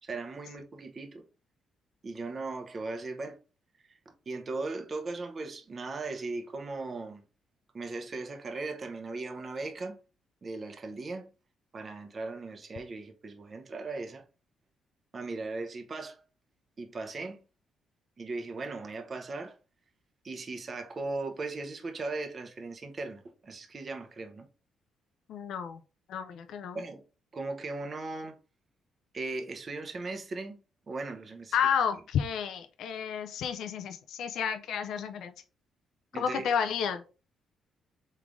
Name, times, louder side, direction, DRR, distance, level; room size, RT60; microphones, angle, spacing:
voice 1, 0.0-1.2 2.0-3.4 4.1-7.2 7.7-10.0 10.4-11.3 11.7-14.2 15.1-16.2 16.8-17.4 18.2-19.5 20.2-24.5 26.7-27.0 27.3-28.4 29.1-30.6 30.9-31.6 36.1-36.5, right 3 dB, 40° right, 0.8 m, -38 dB
voice 2, 25.3-25.8 26.1-26.8 31.5-35.3 36.2-37.0, left 7 dB, 75° left, 0.5 m, -31 dB
3.7 x 3.2 x 3.5 m
cardioid pair, 90°, 0 cm